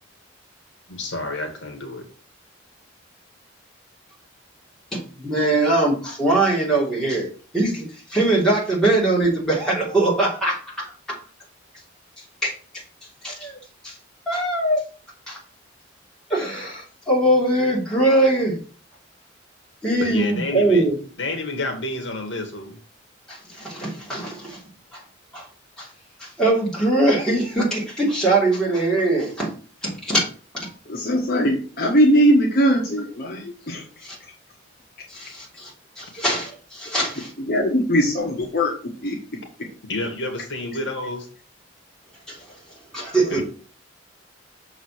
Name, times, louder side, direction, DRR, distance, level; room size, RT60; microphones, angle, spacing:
voice 1, 0.9-2.0 20.0-20.8 21.2-22.8 39.9-41.3 43.3-43.4, left 2 dB, 65° left, 3 dB, 1.8 m, -29 dB
voice 2, 4.9-7.3 7.5-11.2 12.4-12.5 13.2-13.6 13.8-13.9 14.3-14.8 15.3-15.4 16.3-18.6 19.8-21.0 23.3-24.6 24.9-25.0 25.3-25.4 25.8-25.9 26.2-29.5 29.8-30.2 34.0-34.2 35.1-37.3 42.3-42.4 42.9-43.4, right 2 dB, 5° left, -6 dB, 2.9 m, -22 dB
voice 3, 30.9-34.1 37.4-38.7 39.0-39.2, equal, 50° left, -2 dB, 1.6 m, -20 dB
6.5 x 4.0 x 6.3 m, 0.39 s
head